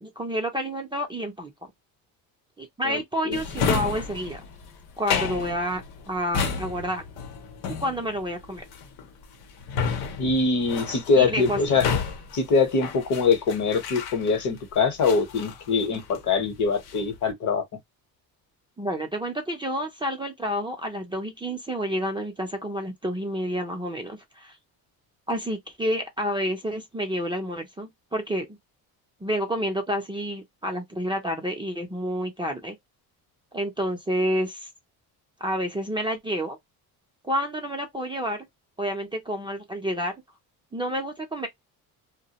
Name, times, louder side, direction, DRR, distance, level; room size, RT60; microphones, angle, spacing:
voice 1, 0.0-1.5 2.6-4.4 5.0-7.0 7.7-8.6 11.2-11.6 18.8-24.6 25.3-28.5 29.2-32.8 33.5-34.7 35.4-36.6 37.2-38.5 38.8-40.1 40.7-41.5, equal, 15° right, 0.5 m, -29 dB
Drawer open or close, 3.3-14.6 15.0-16.3 16.6-17.2, left 6 dB, 85° left, 0.8 m, -31 dB
voice 2, 10.2-11.8 12.3-17.6, left 4 dB, 50° left, 0.9 m, -23 dB
2.2 x 2.0 x 2.8 m
cardioid pair, 115°, 37 cm